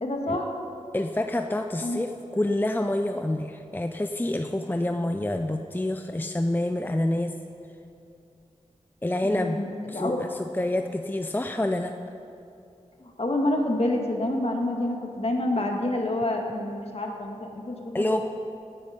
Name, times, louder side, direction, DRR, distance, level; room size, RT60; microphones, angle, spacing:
voice 1, 0.0-0.5 1.8-2.0 9.2-9.7 9.9-10.2 13.0-18.1, left 1 dB, 55° left, 1 dB, 2.0 m, -28 dB
voice 2, 0.9-7.3 9.0-9.6 9.9-11.9 17.9-18.2, left 1 dB, 15° left, 6 dB, 0.6 m, -27 dB
17.5 x 9.8 x 5.2 m, 2.6 s
wide cardioid pair, 60°, 12 cm